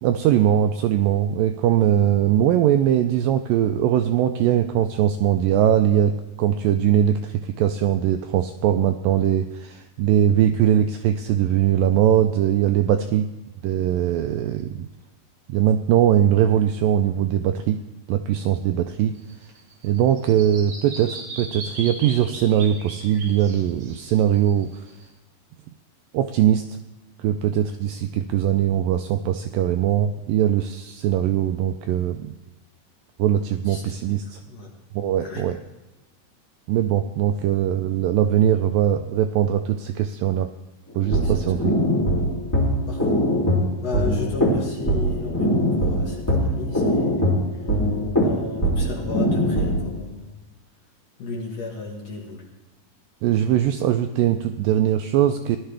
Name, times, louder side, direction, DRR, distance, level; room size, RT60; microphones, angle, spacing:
voice 1, 0.0-13.3 13.6-14.9 15.5-17.8 18.1-19.2 19.8-24.7 26.1-26.7 27.2-32.3 33.2-34.4 34.9-35.6 36.7-40.5 41.0-41.8 53.2-55.6, right 10 dB, 85° right, 7 dB, 2.0 m, -21 dB
Bird vocalization bird call bird song, 19.1-25.0, right 3 dB, 50° right, 2.8 m, -38 dB
voice 2, 33.4-34.0 34.5-34.7 35.2-35.5 41.1-41.6 42.9-43.2 43.8-47.6 48.2-50.5 51.2-52.5, left 3 dB, 50° left, -1 dB, 2.3 m, -34 dB
sound 1, 40.9-50.0, equal, 5° left, 2.0 m, -22 dB
17.0 x 11.5 x 3.4 m, 1.0 s
omnidirectional pair, 4.4 m